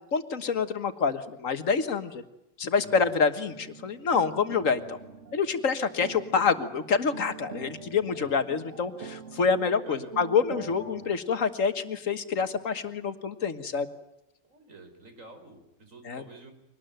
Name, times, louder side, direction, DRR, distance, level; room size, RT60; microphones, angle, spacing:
voice 1, 0.1-2.2 2.6-5.0 5.3-13.9 16.1-16.2, left 5 dB, 90° left, 10 dB, 1.9 m, -27 dB
sound 1, 3.5-11.2, right 5 dB, 70° right, 1.9 m, -44 dB
voice 2, 14.4-16.5, right 2 dB, 85° right, 6 dB, 5.0 m, -47 dB
24.0 x 19.0 x 9.1 m, 0.94 s
omnidirectional pair, 1.3 m